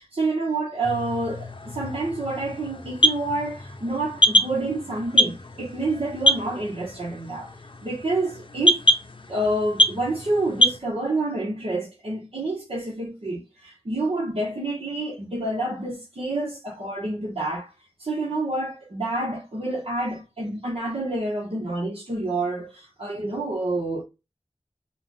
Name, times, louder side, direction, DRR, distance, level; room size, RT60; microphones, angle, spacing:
voice 1, 0.0-7.5 7.8-8.9 9.3-17.7 18.0-24.0, right 2 dB, 70° right, 1.4 m, -28 dB
sound 1, 0.8-10.8, equal, 55° left, 0.8 m, -25 dB
4.6 x 2.5 x 3.8 m
wide cardioid pair, 50°, 10 cm